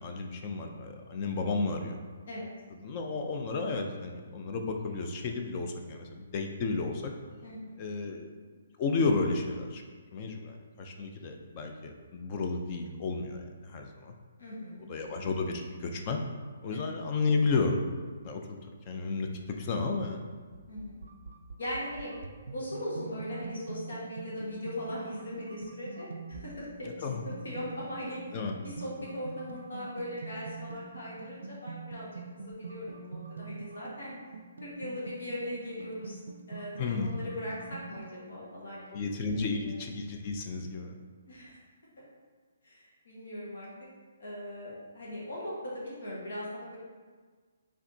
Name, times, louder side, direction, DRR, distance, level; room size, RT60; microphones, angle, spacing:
voice 1, 0.0-2.0 2.8-7.1 7.8-8.3 8.8-9.8 10.1-14.1 14.9-16.2 16.6-17.8 18.2-20.2 27.0-27.2 28.3-28.5 36.8-37.2 38.9-41.0, left 4 dB, 25° left, 3 dB, 0.4 m, -32 dB
voice 2, 7.4-7.8 14.4-14.8 16.7-16.9 20.7-21.0 21.6-22.1 22.5-26.9 27.2-28.2 28.6-32.1 32.5-34.1 34.6-36.2 36.5-38.9 39.3-39.7 41.3-41.6 42.0-42.1 42.6-43.7 44.2-46.8, left 1 dB, 80° left, -6 dB, 1.4 m, -39 dB
sound 1, 19.2-38.2, right 4 dB, 90° right, 0.4 m, -45 dB
4.8 x 3.4 x 2.7 m, 1.5 s
hypercardioid pair, 170°, 0 cm